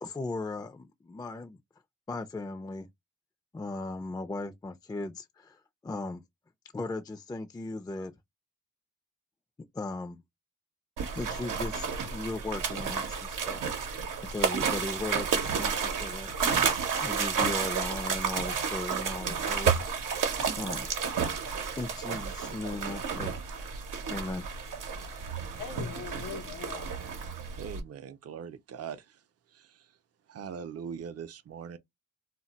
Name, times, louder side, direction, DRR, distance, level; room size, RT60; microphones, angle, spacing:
voice 1, 0.0-1.6 2.1-2.9 3.5-6.2 6.7-8.1 9.7-10.2 11.2-13.6 14.2-16.3 17.0-19.8 20.1-20.2 20.6-20.9 21.8-23.4 24.1-24.5, left 2 dB, 15° left, 0.4 m, -37 dB
sound 1, 11.0-27.8, right 6 dB, 90° right, 0.7 m, -31 dB
voice 2, 24.9-27.0, left 6 dB, 85° left, 0.7 m, -43 dB
voice 3, 27.6-29.2 29.5-29.8 30.3-31.8, right 7 dB, 50° right, 0.5 m, -41 dB
2.1 x 2.1 x 3.8 m
cardioid pair, 65°, 31 cm